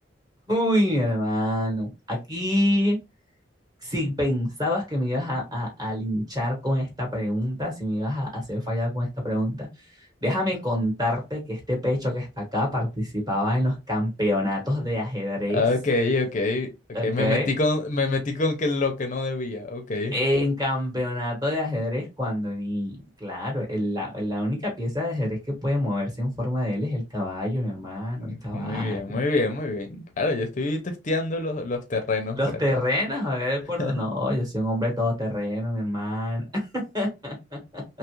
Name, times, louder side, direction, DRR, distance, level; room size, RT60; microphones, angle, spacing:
voice 1, 0.5-3.0 3.8-9.7 10.2-15.6 16.9-17.5 20.1-29.2 32.4-38.0, left 1 dB, 20° right, 1.1 m, -26 dB
voice 2, 15.5-16.7 17.0-20.2 28.2-32.4 32.7-32.8 33.8-34.0, left 3 dB, 45° left, 0.5 m, -26 dB
2.8 x 2.4 x 3.0 m
head